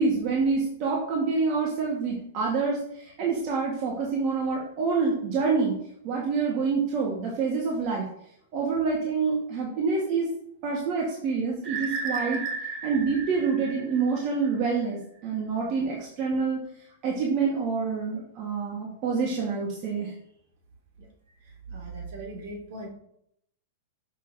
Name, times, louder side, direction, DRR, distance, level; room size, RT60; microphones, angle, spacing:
voice 1, 0.0-5.7 6.0-8.0 8.5-10.3 10.6-12.4 12.8-16.6 17.0-20.1, right 4 dB, 45° right, -2 dB, 1.5 m, -27 dB
sound 1, 11.6-14.5, right 4 dB, 25° right, 1.3 m, -34 dB
voice 2, 21.4-22.9, right 2 dB, 60° right, -1 dB, 2.2 m, -39 dB
6.4 x 6.2 x 2.7 m, 0.73 s
hypercardioid pair, 130°, 0 cm